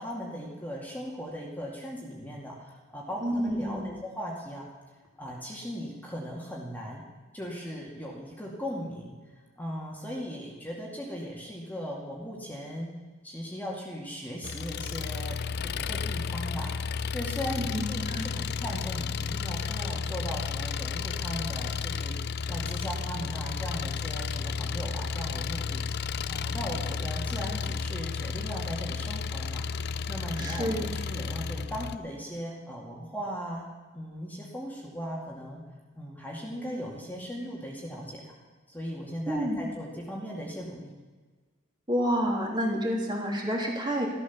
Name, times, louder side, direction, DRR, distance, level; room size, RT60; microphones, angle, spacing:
voice 1, 0.0-4.7 5.2-7.0 7.3-9.2 9.6-12.9 13.2-16.7 17.1-29.6 30.1-33.7 33.9-35.6 35.9-38.3 38.7-40.9, equal, 10° left, -3 dB, 2.3 m, -38 dB
voice 2, 3.2-3.9 17.7-18.3 30.4-30.9 39.3-39.6 41.9-44.1, equal, 20° right, -1 dB, 3.2 m, -29 dB
Engine, 14.4-32.0, left 5 dB, 55° left, 0.5 m, -32 dB
14.5 x 13.0 x 7.2 m, 1.4 s
head